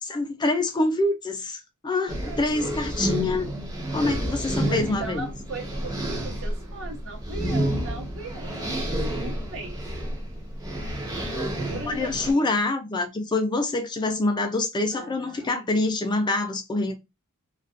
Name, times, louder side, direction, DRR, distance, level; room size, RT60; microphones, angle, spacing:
voice 1, 0.0-3.5 3.9-5.3 11.9-16.9, left 2 dB, 20° left, 0.4 m, -26 dB
sound 1, 2.1-12.3, right 1 dB, 15° right, 0.7 m, -30 dB
voice 2, 4.5-9.8 11.6-12.6 14.9-15.7, right 3 dB, 60° right, 0.9 m, -39 dB
2.4 x 2.2 x 2.4 m
head